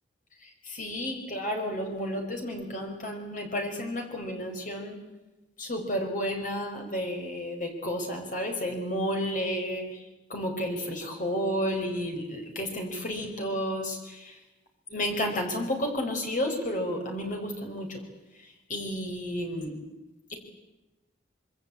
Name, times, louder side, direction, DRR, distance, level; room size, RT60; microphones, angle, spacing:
voice 1, 0.4-5.0 5.6-10.0 10.3-14.4 14.9-18.0 18.4-19.8 20.3-20.4, equal, 45° left, 3 dB, 4.9 m, -32 dB
26.0 x 24.5 x 8.6 m, 1.0 s
head